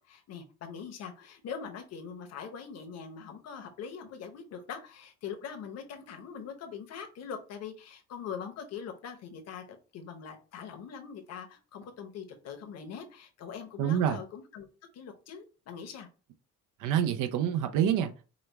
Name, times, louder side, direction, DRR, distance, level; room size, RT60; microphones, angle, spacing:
voice 1, 0.0-14.7 14.9-16.1, left 7 dB, 55° left, 0.9 m, -42 dB
voice 2, 13.8-14.2 16.8-18.2, right 9 dB, 75° right, 0.5 m, -27 dB
5.0 x 2.3 x 3.3 m
cardioid pair, 165°, 31 cm